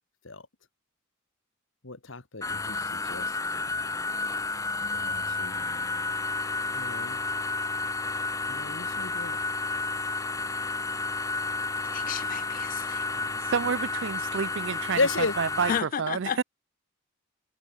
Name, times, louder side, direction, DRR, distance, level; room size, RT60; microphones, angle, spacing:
voice 1, 1.8-3.9 4.8-5.9 6.7-7.2 8.5-9.4 13.2-13.5 14.9-15.4, left 3 dB, 75° left, 2.1 m, -34 dB
sound 1, 2.4-15.8, left 3 dB, 15° left, 0.8 m, -31 dB
voice 2, 11.8-13.1 15.7-16.4, left 8 dB, 45° left, 0.4 m, -33 dB
voice 3, 13.5-15.0 15.4-16.4, right 6 dB, 65° right, 0.5 m, -29 dB
head